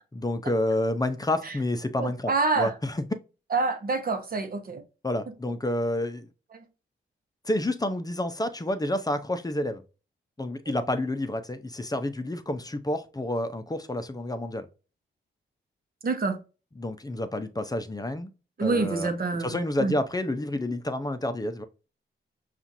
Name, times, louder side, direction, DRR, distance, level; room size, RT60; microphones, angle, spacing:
voice 1, 0.1-2.3 2.6-2.9 5.0-6.3 7.4-9.8 10.4-14.7 16.8-18.3 18.6-19.1 19.4-21.6, left 1 dB, 20° left, 0.7 m, -29 dB
voice 2, 2.0-2.7 3.5-4.8 6.5-6.7 16.0-16.4 18.6-20.0, right 3 dB, 45° right, 0.9 m, -27 dB
5.6 x 2.5 x 2.7 m
cardioid pair, 60°, 21 cm